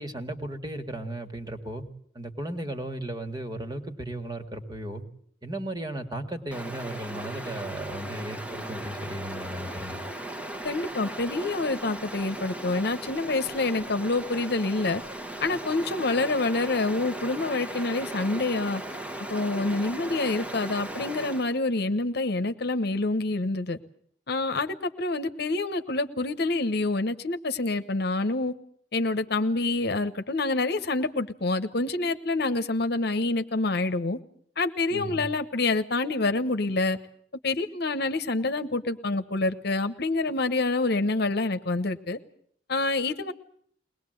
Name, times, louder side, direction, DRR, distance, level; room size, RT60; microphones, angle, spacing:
voice 1, 0.0-1.8 2.1-5.0 5.4-10.0 34.9-35.3, right 1 dB, 25° right, 6 dB, 1.9 m, -35 dB
Stream, 6.5-21.6, right 1 dB, 5° right, 1.2 m, -37 dB
voice 2, 10.6-15.0 15.4-18.8 19.3-23.8 24.3-28.5 28.9-34.2 34.6-37.0 37.4-42.2 42.7-43.3, left 2 dB, 60° left, 10 dB, 1.1 m, -27 dB
22.0 x 20.0 x 7.8 m, 0.63 s
head